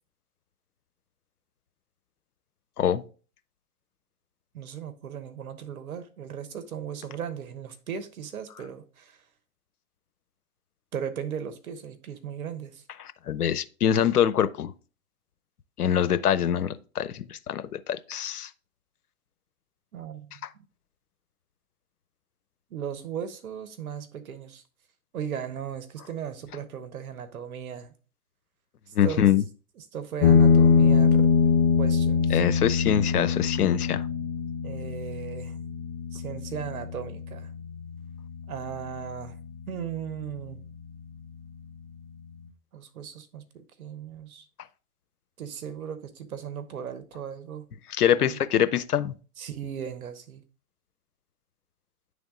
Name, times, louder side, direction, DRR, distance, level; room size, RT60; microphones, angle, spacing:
voice 1, 4.5-9.2 10.9-12.8 19.9-20.4 22.7-24.6 25.1-27.9 29.0-29.3 29.8-31.3 31.8-32.4 34.6-35.6 36.1-37.5 38.5-39.4 39.7-40.6 42.7-44.5 45.4-47.7 48.1-48.5 49.4-50.4, right 8 dB, 70° right, 1.2 m, -37 dB
voice 2, 13.3-14.7 15.8-18.5 28.9-29.4 32.3-34.1 47.9-49.2, left 9 dB, 85° left, 0.7 m, -24 dB
sound 1, 30.2-39.2, left 6 dB, 40° left, 0.9 m, -23 dB
9.5 x 3.5 x 3.7 m
hypercardioid pair, 130°, 44 cm